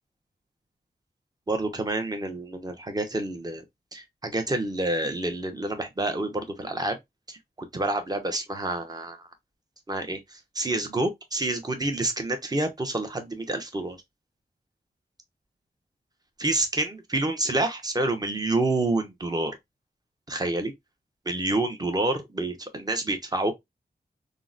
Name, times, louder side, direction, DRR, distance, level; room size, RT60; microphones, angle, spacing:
voice 1, 1.5-3.6 3.9-7.0 7.3-9.2 9.9-14.0 16.4-19.6 20.3-20.7 21.3-23.5, right 2 dB, 20° right, 0.8 m, -28 dB
3.6 x 2.1 x 2.4 m
wide cardioid pair, 75°, 17 cm